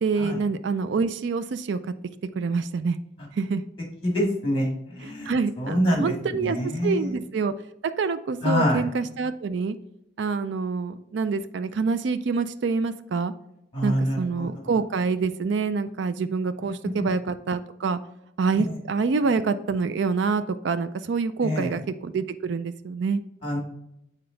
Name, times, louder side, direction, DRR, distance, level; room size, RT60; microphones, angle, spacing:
voice 1, 0.0-1.8 2.3-3.0 3.4-3.6 5.0-7.5 8.0-9.8 10.2-13.3 13.8-18.0 18.4-23.2, right 4 dB, 60° right, 12 dB, 0.4 m, -26 dB
voice 2, 4.0-5.3 5.6-6.1 6.4-7.2 8.4-8.8 13.7-14.5 21.4-21.7 23.4-23.6, equal, 25° left, 0 dB, 2.0 m, -25 dB
6.8 x 4.3 x 3.8 m, 0.82 s
head